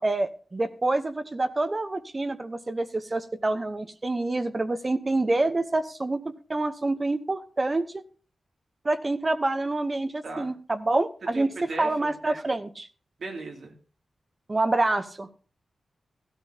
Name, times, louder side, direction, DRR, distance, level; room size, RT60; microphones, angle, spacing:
voice 1, 0.0-6.2 6.5-8.0 8.8-11.5 11.8-12.9 14.5-15.3, right 2 dB, 25° right, 9 dB, 0.9 m, -27 dB
voice 2, 11.3-12.6 13.2-13.7, right 3 dB, 60° right, 1 dB, 2.6 m, -37 dB
16.0 x 12.5 x 2.8 m, 0.40 s
wide cardioid pair, 160°, 0 cm